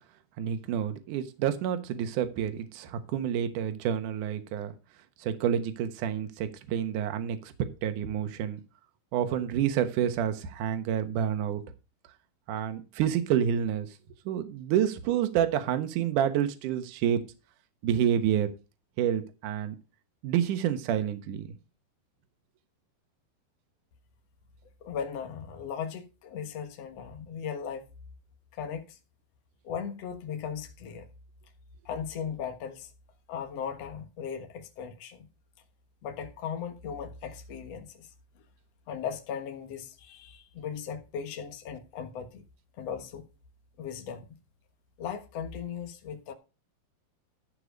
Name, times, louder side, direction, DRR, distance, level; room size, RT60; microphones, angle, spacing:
voice 1, 0.4-4.7 5.2-8.6 9.1-11.6 12.5-13.9 14.3-17.2 17.8-18.5 19.0-19.8 20.2-21.5, right 9 dB, 65° right, 2.1 m, -28 dB
voice 2, 24.8-27.8 28.6-29.0 29.6-31.1 31.8-32.9 33.3-35.3 36.0-38.1 38.9-42.4 42.8-43.3 43.8-44.3 45.0-46.3, left 7 dB, 80° left, 1.4 m, -37 dB
14.0 x 4.9 x 5.2 m
omnidirectional pair, 5.2 m